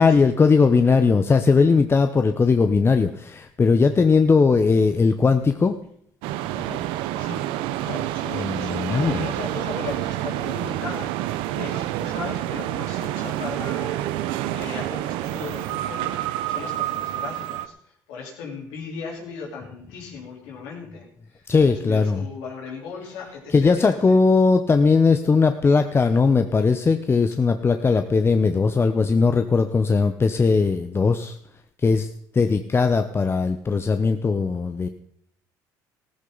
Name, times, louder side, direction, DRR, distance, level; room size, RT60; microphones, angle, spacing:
voice 1, 0.0-5.8 8.4-9.3 21.5-22.2 23.5-31.4 31.8-32.1 32.3-34.9, left 4 dB, 30° left, 8 dB, 0.8 m, -19 dB
sound 1, 6.2-17.7, right 13 dB, 80° right, 0.7 m, -28 dB
voice 2, 7.8-14.2 14.5-24.2, left 5 dB, 85° left, -2 dB, 3.6 m, -37 dB
15.0 x 13.5 x 4.0 m, 0.68 s
supercardioid pair, 75°, 9 cm